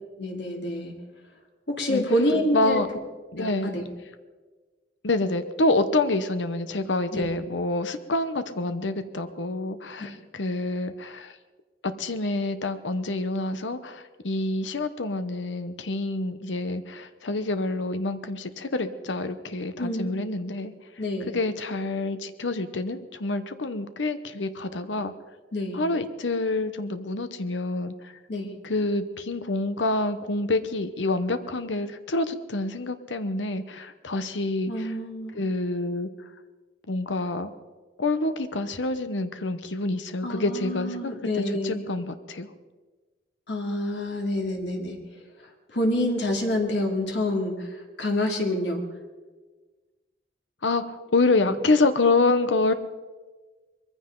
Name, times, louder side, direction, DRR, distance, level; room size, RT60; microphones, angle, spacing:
voice 1, 0.2-0.9 1.7-2.8 3.4-3.8 7.1-7.3 10.0-10.1 19.8-20.4 21.0-21.3 25.5-25.8 28.3-28.5 34.7-35.4 40.2-41.8 43.5-45.0 45.7-48.8 51.5-51.6, left 1 dB, 70° left, 1 dB, 2.5 m, -27 dB
voice 2, 2.5-2.9 3.3-3.7 5.0-11.3 11.8-20.7 21.3-25.1 25.7-28.1 28.6-34.9 35.3-36.1 36.9-37.5 38.0-42.5 50.6-52.7, left 2 dB, 90° left, 10 dB, 0.9 m, -27 dB
22.0 x 15.0 x 3.9 m, 1.3 s
head